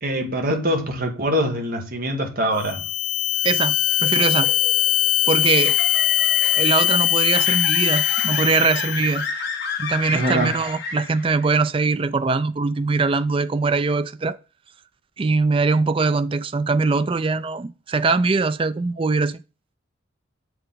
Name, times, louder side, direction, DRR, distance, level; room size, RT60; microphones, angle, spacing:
voice 1, 0.0-2.8 10.1-10.5, equal, 45° right, 1.6 m, -23 dB
sound 1, 2.6-9.2, left 13 dB, 70° left, 0.4 m, -21 dB
voice 2, 3.4-4.5 5.3-5.8 6.5-9.2 9.8-14.4 15.2-19.4, right 4 dB, 25° right, 0.3 m, -22 dB
sound 2, 3.9-11.5, left 4 dB, 55° left, 1.4 m, -31 dB
7.7 x 4.6 x 3.9 m
head